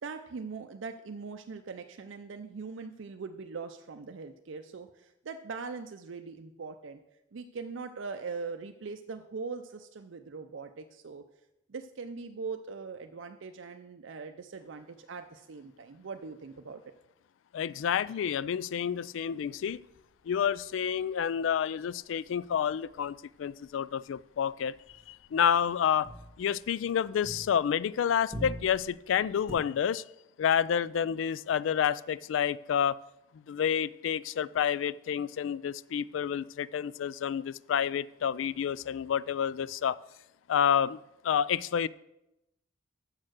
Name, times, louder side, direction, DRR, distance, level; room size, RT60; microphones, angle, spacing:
voice 1, 0.0-7.0 7.3-11.2 11.7-16.8, right 4 dB, 80° right, 6 dB, 0.5 m, -41 dB
voice 2, 17.5-19.8 20.3-24.7 25.1-30.0 30.4-33.0 33.3-40.0 40.5-41.9, left 8 dB, 85° left, 20 dB, 0.3 m, -29 dB
sound 1, 19.4-23.1 23.4-23.7 24.0-27.9 28.1-29.5, equal, 15° left, 2.0 m, -46 dB
7.2 x 6.5 x 6.4 m, 0.87 s
head